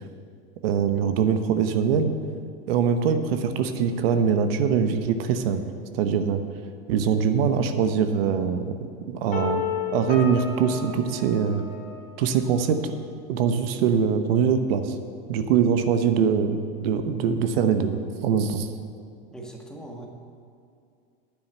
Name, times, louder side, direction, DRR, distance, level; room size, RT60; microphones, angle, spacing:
voice 1, 0.6-2.1 2.7-5.6 5.9-6.4 6.9-8.7 9.1-9.6 9.9-11.6 12.2-12.9 13.3-15.0 15.3-17.9 18.2-18.7, right 7 dB, 75° right, 8 dB, 1.0 m, -23 dB
sound 1, 9.3-12.3, left 6 dB, 30° left, 2.4 m, -32 dB
voice 2, 19.3-20.1, right 1 dB, ahead, 0 dB, 1.6 m, -40 dB
9.5 x 7.2 x 9.1 m, 2.4 s
supercardioid pair, 130°, 30 cm